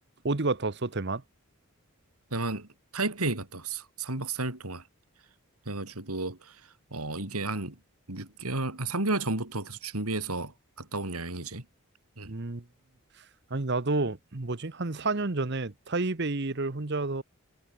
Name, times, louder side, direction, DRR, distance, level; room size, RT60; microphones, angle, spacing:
voice 1, 0.2-1.2 12.2-12.6 13.5-17.2, right 3 dB, 50° right, 1.1 m, -30 dB
voice 2, 2.3-2.7 2.9-4.8 5.7-6.6 6.9-7.8 8.1-10.5 10.8-11.6 12.2-12.3, right 2 dB, 85° right, 4.2 m, -32 dB
head